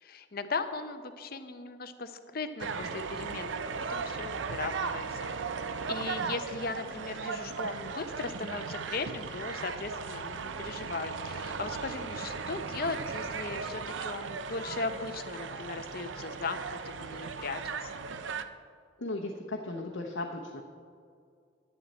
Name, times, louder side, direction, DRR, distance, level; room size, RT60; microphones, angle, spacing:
voice 1, 0.0-3.6 3.9-5.3 5.9-17.9, left 4 dB, 50° left, 9 dB, 0.7 m, -38 dB
sound 1, 2.6-18.4, right 5 dB, 70° right, 0.5 m, -37 dB
voice 2, 19.0-20.6, left 2 dB, 85° left, -1 dB, 1.0 m, -36 dB
11.0 x 10.0 x 4.2 m, 2.3 s
head